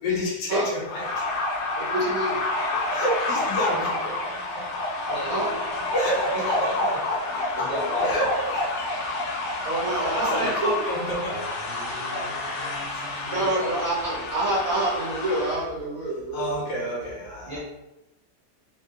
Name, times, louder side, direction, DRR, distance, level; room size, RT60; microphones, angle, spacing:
voice 1, 0.0-1.3 2.7-4.8 5.9-7.7 8.0-9.4 9.9-11.5 12.9-13.1 16.3-17.6, equal, 85° left, -3 dB, 1.3 m, -30 dB
sound 1, 0.8-15.7, left 2 dB, 70° left, 0.7 m, -29 dB
voice 2, 1.8-2.4 5.1-5.5 7.7-7.8 9.6-10.7 11.9-12.0 13.3-16.5, right 1 dB, 60° right, -6 dB, 1.3 m, -27 dB
voice 3, 5.1-5.4 6.3-7.0 7.3-8.2 11.9-12.6 13.3-14.2 17.5-17.6, left 1 dB, 30° right, -9 dB, 1.0 m, -35 dB
3.3 x 2.2 x 2.7 m, 1.0 s
omnidirectional pair, 1.7 m